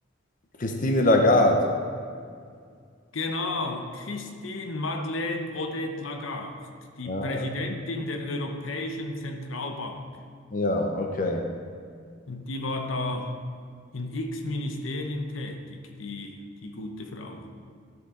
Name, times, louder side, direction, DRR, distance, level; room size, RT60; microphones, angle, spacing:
voice 1, 0.6-1.7 7.1-7.5 10.5-11.5, left 1 dB, 45° left, 3 dB, 0.7 m, -22 dB
voice 2, 3.1-6.6 7.0-10.0 12.3-13.4 13.9-16.4 16.6-17.5, left 2 dB, 80° left, 5 dB, 0.9 m, -32 dB
13.0 x 6.7 x 3.8 m, 2.2 s
head